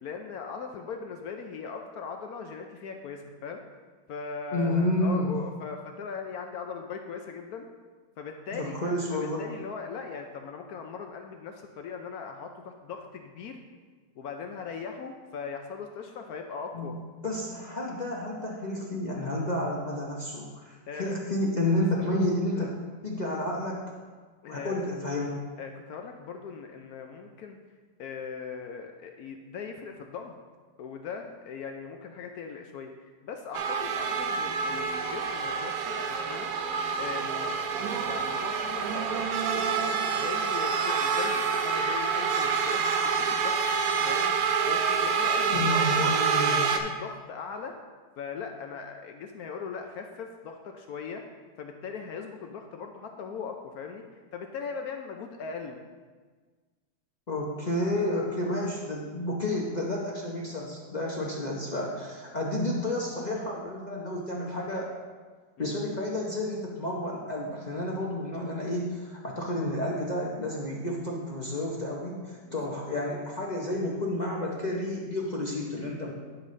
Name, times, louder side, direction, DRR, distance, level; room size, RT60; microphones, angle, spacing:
voice 1, 0.0-3.6 4.1-7.7 8.2-13.6 14.2-17.0 20.9-21.2 22.1-22.7 24.4-24.9 25.6-27.6 28.0-30.3 30.8-36.5 37.0-39.7 40.1-43.6 44.0-44.3 44.7-46.1 46.5-47.8 48.2-51.2 51.6-55.8 65.6-65.8 72.4-72.6, left 5 dB, 70° left, 4 dB, 0.9 m, -39 dB
voice 2, 4.5-5.3 8.5-9.4 16.7-16.9 17.2-22.7 23.0-23.8 24.5-25.4 45.5-46.6 57.3-64.9 65.6-76.1, left 1 dB, 45° left, -3 dB, 0.5 m, -30 dB
sound 1, 33.5-46.8, right 5 dB, 70° right, 0.9 m, -27 dB
11.5 x 5.3 x 3.2 m, 1.5 s
omnidirectional pair, 2.0 m